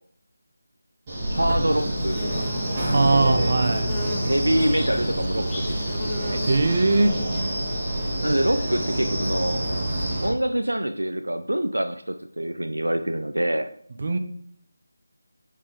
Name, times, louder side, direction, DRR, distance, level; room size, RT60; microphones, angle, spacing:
Wind, 1.1-10.3, right 1 dB, 20° right, 4.0 m, -27 dB
Bird / Buzz, 1.3-9.0, left 2 dB, 10° left, 1.0 m, -38 dB
voice 1, 1.3-2.5 3.1-3.7 4.2-6.4 8.2-9.6 10.2-13.7, right 1 dB, 80° right, 8 dB, 0.6 m, -26 dB
voice 2, 2.9-3.9 6.4-7.2 14.0-14.2, right 3 dB, 45° right, 7 dB, 1.0 m, -20 dB
8.5 x 6.7 x 3.8 m, 0.64 s
figure-of-eight pair, 160°, 0 cm